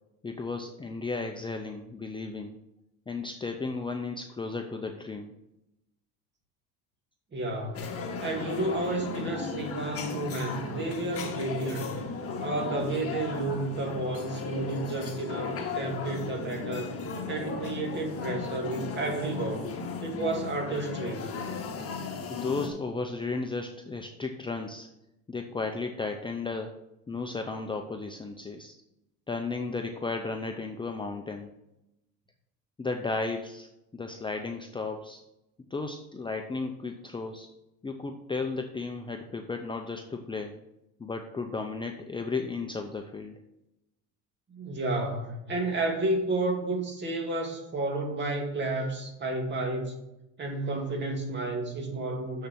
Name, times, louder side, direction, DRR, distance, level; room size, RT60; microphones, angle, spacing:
voice 1, 0.2-2.6 3.1-5.3 22.3-24.9 25.3-26.8 27.1-28.8 29.3-31.5 32.8-35.2 35.7-37.5 37.8-40.6 41.0-43.4, left 3 dB, 15° left, 3 dB, 0.6 m, -34 dB
voice 2, 7.3-12.0 12.4-17.0 17.3-19.7 20.0-21.3 44.5-50.0 50.4-52.5, right 2 dB, 30° right, 2 dB, 2.2 m, -31 dB
sound 1, 7.7-22.7, left 4 dB, 40° left, 1.8 m, -36 dB
6.9 x 6.6 x 6.1 m, 0.88 s
cardioid pair, 135°, 35 cm